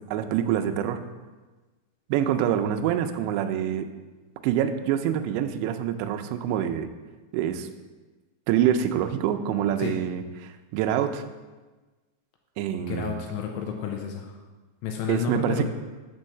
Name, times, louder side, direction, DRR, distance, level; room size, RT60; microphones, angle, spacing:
voice 1, 0.1-1.0 2.1-3.9 4.4-6.9 7.3-7.7 8.5-11.2 12.6-13.1 15.1-15.7, right 10 dB, 85° right, 7 dB, 2.8 m, -26 dB
voice 2, 12.8-14.4 14.8-15.7, left 7 dB, 85° left, 2 dB, 2.6 m, -31 dB
6.1 x 5.4 x 6.5 m, 1.3 s
omnidirectional pair, 5.2 m